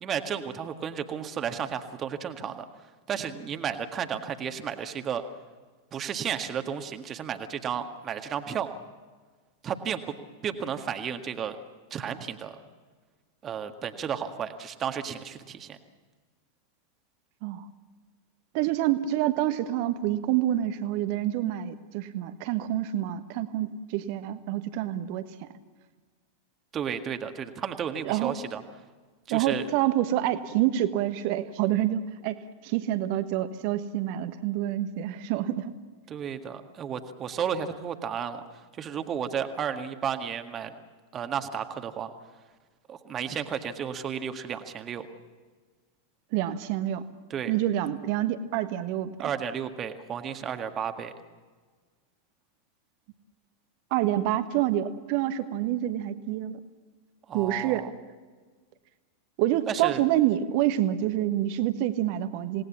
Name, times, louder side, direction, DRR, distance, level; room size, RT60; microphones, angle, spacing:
voice 1, 0.0-2.7 3.1-5.2 5.9-8.7 9.6-10.0 10.4-11.6 11.9-12.6 13.4-15.8 26.7-28.6 29.3-29.7 36.1-38.4 38.8-40.7 41.1-42.1 42.9-45.1 47.3-47.5 49.2-51.1 57.3-57.9 59.7-60.0, right 8 dB, 25° right, 7 dB, 1.8 m, -33 dB
voice 2, 18.5-25.5 28.0-28.3 29.3-32.4 32.6-35.7 46.3-47.0 47.5-49.3 53.9-56.6 57.3-57.9 59.4-62.6, right 13 dB, 45° right, 11 dB, 1.3 m, -27 dB
27.5 x 19.0 x 7.3 m, 1.4 s
figure-of-eight pair, 90°, 0 cm